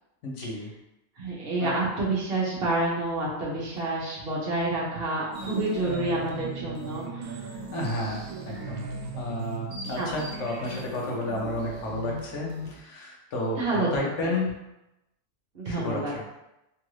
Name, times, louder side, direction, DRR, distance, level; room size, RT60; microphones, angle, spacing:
voice 1, 0.2-0.7 1.6-1.8 7.7-8.8 9.2-14.6 15.6-16.2, left 1 dB, 70° left, -2 dB, 1.0 m, -32 dB
voice 2, 1.2-7.4 10.0-10.1 13.6-14.1 15.5-16.1, right 2 dB, 55° right, -5 dB, 0.9 m, -28 dB
sound 1, 5.3-12.8, right 2 dB, 85° right, 1.0 m, -37 dB
3.0 x 2.5 x 3.1 m, 0.91 s
omnidirectional pair, 1.3 m